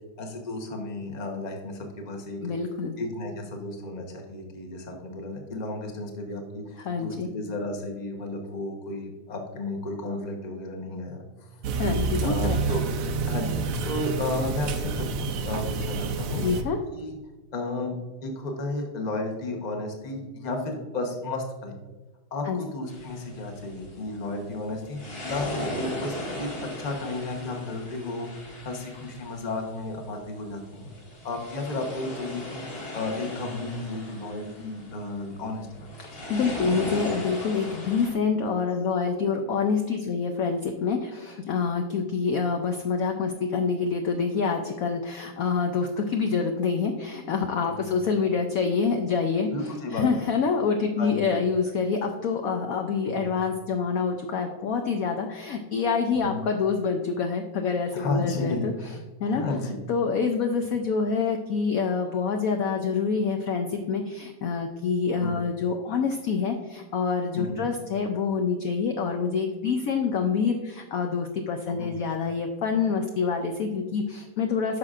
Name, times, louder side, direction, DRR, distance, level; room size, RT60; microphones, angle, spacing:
voice 1, 0.2-2.5 3.0-11.2 12.2-12.8 13.3-13.6 13.9-16.4 16.9-17.2 17.5-18.0 18.2-21.7 22.3-30.9 31.2-35.9 47.8-47.9 49.5-50.2 51.0-51.4 53.1-53.3 56.1-56.4 57.9-58.7 59.2-59.8 65.2-65.4 67.4-67.7 71.7-71.9, left 2 dB, 35° left, 2 dB, 0.7 m, -33 dB
voice 2, 2.4-3.0 6.8-7.3 11.8-12.6 16.3-16.8 22.5-22.6 36.0-58.7 59.2-59.4 59.9-74.8, left 5 dB, 75° left, 4 dB, 0.8 m, -26 dB
sound 1, 11.6-16.6, right 4 dB, 80° right, 0.7 m, -28 dB
sound 2, 22.9-38.1, left 1 dB, 55° left, 2.4 m, -38 dB
9.7 x 6.0 x 2.4 m, 1.2 s
omnidirectional pair, 2.1 m